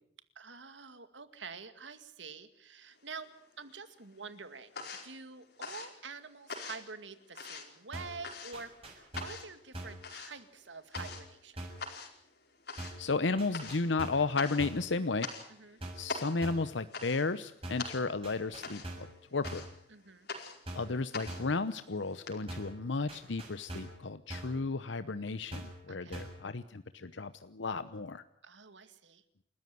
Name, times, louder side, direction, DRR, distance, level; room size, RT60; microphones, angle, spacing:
voice 1, 0.4-3.3 3.6-4.8 5.0-11.7 15.5-15.8 19.9-20.3 25.9-26.2 28.4-29.2, right 4 dB, 90° right, 10 dB, 2.3 m, -47 dB
sound 1, 3.0-3.8 4.0-22.3, left 4 dB, 60° left, 4.8 m, -44 dB
sound 2, 7.9-8.2 8.5-9.5 9.7-10.1 11.0-11.3 11.6-11.9 12.8-13.1 13.4-14.3 14.6-14.9 15.8-16.1 16.4-16.7 17.6-17.9 18.2-19.2 19.4-19.8 20.7-21.0 21.3-21.6 22.5-22.8 23.1-24.0 24.3-24.6 25.5-25.8 26.1-26.4, right 1 dB, 30° right, 6.9 m, -43 dB
voice 2, 13.0-15.3 16.0-19.6 20.7-28.2, left 3 dB, 85° left, 12 dB, 0.9 m, -33 dB
30.0 x 14.0 x 9.5 m, 0.65 s
head